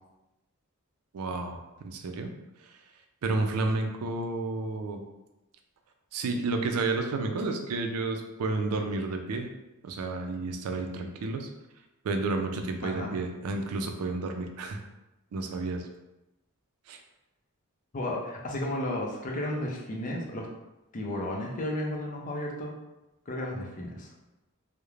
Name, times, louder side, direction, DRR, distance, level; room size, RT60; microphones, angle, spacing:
voice 1, 1.1-2.3 2.6-2.8 3.2-5.0 6.1-9.5 9.8-11.5 12.0-14.8 15.3-15.9 16.9-17.0, right 3 dB, 80° right, 4 dB, 0.4 m, -31 dB
voice 2, 17.9-20.5 20.9-22.7 23.3-24.1, left 1 dB, 35° left, -1 dB, 0.4 m, -33 dB
2.4 x 2.0 x 3.1 m, 0.96 s
head